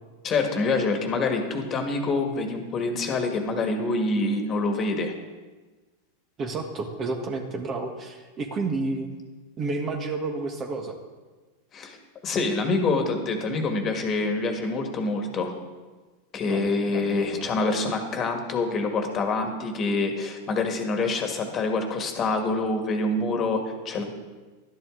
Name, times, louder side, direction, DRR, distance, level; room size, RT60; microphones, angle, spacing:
voice 1, 0.2-5.1 11.7-12.0 12.2-15.5 16.3-24.0, left 3 dB, 30° left, 4 dB, 1.8 m, -26 dB
voice 2, 6.4-9.1 9.6-11.0 16.4-17.6 24.0-24.1, right 3 dB, 30° right, 4 dB, 1.5 m, -31 dB
12.0 x 11.0 x 3.8 m, 1.3 s
hypercardioid pair, 115°, 0 cm